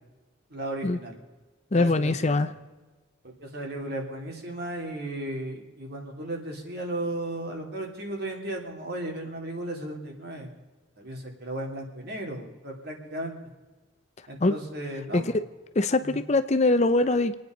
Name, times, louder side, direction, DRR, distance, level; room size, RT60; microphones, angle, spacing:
voice 1, 0.5-1.2 1.7-2.5 3.4-10.5 11.0-13.3 14.3-15.3 16.0-16.2, right 1 dB, 55° right, 1 dB, 3.1 m, -35 dB
voice 2, 1.7-2.5 14.4-14.5 15.1-15.4 15.7-17.3, left 2 dB, 35° left, 11 dB, 0.6 m, -23 dB
27.0 x 9.6 x 5.2 m, 1.2 s
head